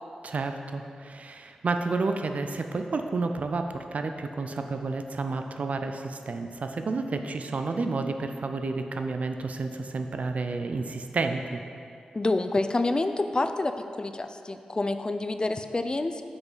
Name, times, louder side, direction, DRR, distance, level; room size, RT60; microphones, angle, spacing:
voice 1, 0.2-11.6, right 3 dB, 60° right, 6 dB, 0.4 m, -30 dB
voice 2, 12.1-16.2, left 2 dB, 30° left, 8 dB, 0.4 m, -28 dB
6.1 x 5.0 x 3.9 m, 2.4 s
cardioid pair, 40°, 3 cm